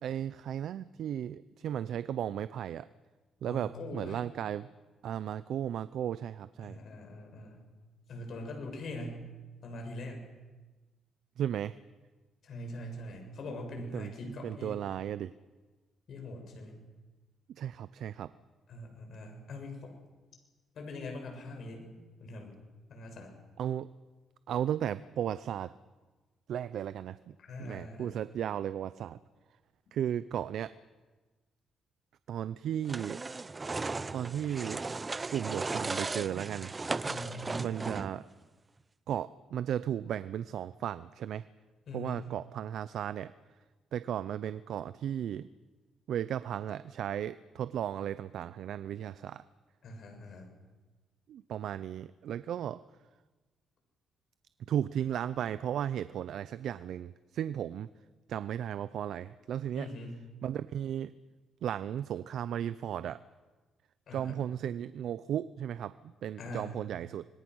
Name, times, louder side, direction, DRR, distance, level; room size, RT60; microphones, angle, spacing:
voice 1, 0.0-2.9 3.4-4.7 5.0-6.8 11.4-11.7 13.5-13.6 13.9-15.3 17.6-18.3 23.6-23.9 24.5-25.7 26.5-27.2 27.6-29.2 29.9-30.7 32.3-33.2 34.1-34.9 35.3-36.7 37.6-38.3 39.1-41.5 41.9-43.3 43.9-45.5 46.1-49.4 51.3-52.8 54.7-57.9 58.3-59.9 60.4-61.1 61.6-63.2 64.1-67.3, right 10 dB, 70° right, 15 dB, 0.6 m, -35 dB
voice 2, 3.5-4.2 6.6-7.7 8.1-9.3 9.6-10.3 12.4-14.8 16.1-16.8 18.7-19.9 20.7-21.9 22.2-22.5 22.9-23.3 27.4-28.2 37.1-37.7 41.9-42.2 49.8-50.5 59.8-60.2 64.1-64.4 66.4-66.7, left 1 dB, 60° left, 3 dB, 7.1 m, -42 dB
sound 1, 32.9-38.3, right 3 dB, 25° right, 0.7 m, -36 dB
26.0 x 22.0 x 6.4 m, 1.3 s
cardioid pair, 90°, 0 cm